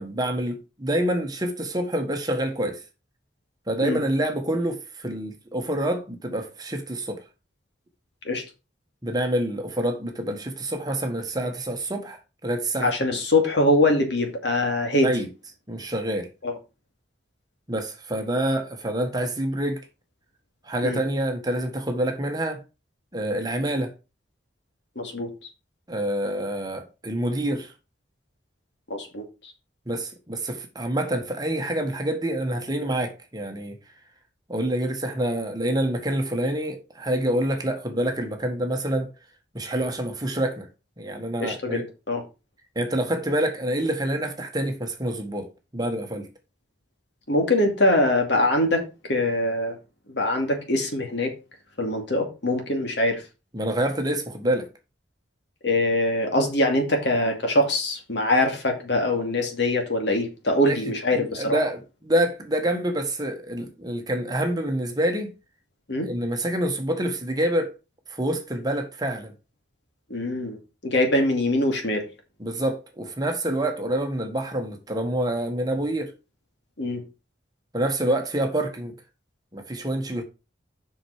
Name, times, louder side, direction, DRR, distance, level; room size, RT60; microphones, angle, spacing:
voice 1, 0.0-2.8 3.7-7.2 9.0-13.2 15.0-15.3 15.7-16.3 17.7-19.8 20.6-22.6 23.1-23.9 25.9-27.7 29.9-33.8 34.5-39.1 39.5-40.7 41.0-41.9 42.7-46.3 53.5-54.7 60.7-65.3 66.0-67.7 68.1-69.3 72.4-76.1 77.7-78.9 79.5-80.2, right 1 dB, 20° right, 1.4 m, -27 dB
voice 2, 12.8-15.1 16.4-16.5 20.8-21.0 25.0-25.3 28.9-29.5 41.4-42.2 47.3-49.8 50.1-51.3 51.8-53.2 55.6-61.6 65.9-66.1 70.1-70.6 70.8-72.0 76.8-77.0, left 1 dB, 70° left, 2.4 m, -23 dB
7.7 x 5.8 x 4.9 m
head